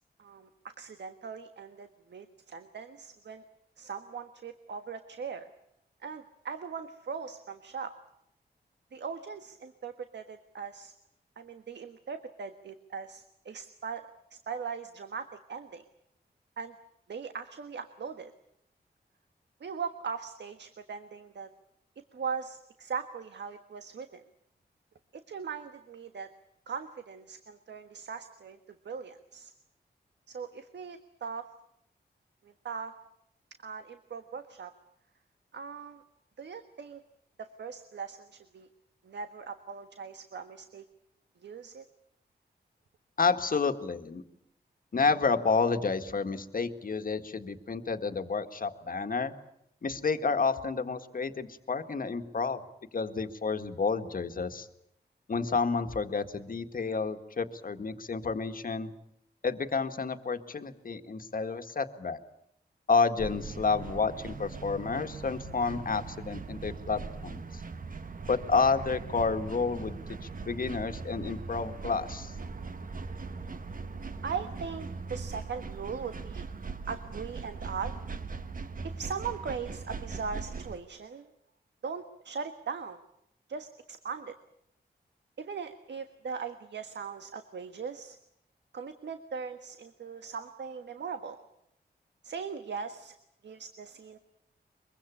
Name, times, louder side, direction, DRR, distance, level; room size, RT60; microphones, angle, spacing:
voice 1, 0.2-3.4 3.8-5.5 6.0-7.9 8.9-10.9 11.4-15.8 16.6-16.7 17.1-18.3 19.6-21.5 22.1-24.2 25.1-26.3 26.7-28.6 28.8-29.5 30.3-31.5 32.4-32.9 33.6-34.7 35.5-36.0 36.4-37.0 37.4-38.7 39.0-40.8 41.4-41.8 74.2-76.4 76.9-77.9 78.8-81.3 81.8-83.0 83.5-84.3 85.4-88.2 88.7-91.4 92.2-93.1 93.4-94.2, right 6 dB, 85° right, 8 dB, 1.4 m, -39 dB
voice 2, 43.2-44.2 44.9-49.3 49.8-52.6 52.9-54.7 55.3-58.9 59.4-62.2 62.9-67.6 68.3-70.0 70.4-72.3, left 4 dB, 55° left, 8 dB, 1.8 m, -30 dB
sound 1, 63.2-80.8, right 4 dB, 50° right, 1.4 m, -40 dB
23.5 x 23.0 x 8.5 m, 0.76 s
wide cardioid pair, 105°, 18 cm